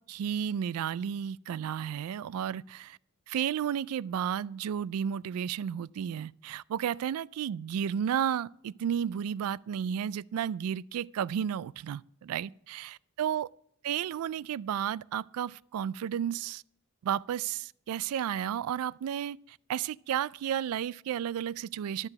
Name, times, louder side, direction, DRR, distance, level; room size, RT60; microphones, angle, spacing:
voice 1, 0.1-3.0 3.3-13.5 13.8-16.6 17.0-19.4 19.7-22.1, right 9 dB, 80° right, 0.3 m, -32 dB
12.5 x 6.7 x 5.8 m
head